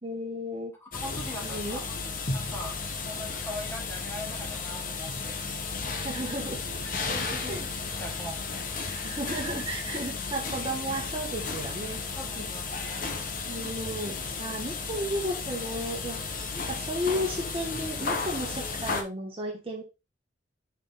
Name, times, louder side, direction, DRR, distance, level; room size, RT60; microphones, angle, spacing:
voice 1, 0.0-0.7 1.4-1.8 5.9-6.6 7.4-7.7 8.9-12.0 12.3-12.4 13.4-19.8, equal, 30° right, 0 dB, 1.5 m, -34 dB
voice 2, 0.8-1.9 2.3-5.3 6.8-8.5 12.1-13.2, left 1 dB, 15° left, -1 dB, 1.7 m, -41 dB
sound 1, 0.9-19.0, left 4 dB, 45° left, 1.0 m, -34 dB
5.7 x 4.9 x 3.7 m, 0.25 s
head